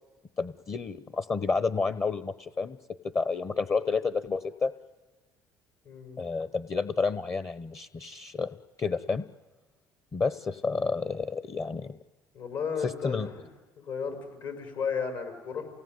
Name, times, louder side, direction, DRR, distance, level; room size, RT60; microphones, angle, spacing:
voice 1, 0.4-2.8 3.1-4.7 6.2-9.2 10.1-12.0 12.8-13.3, left 4 dB, 35° left, 13 dB, 1.0 m, -30 dB
voice 2, 5.8-6.2 12.3-13.5 13.8-15.7, left 6 dB, 70° left, 4 dB, 6.2 m, -34 dB
28.5 x 18.0 x 9.6 m, 1.2 s
supercardioid pair, 80°, 8 cm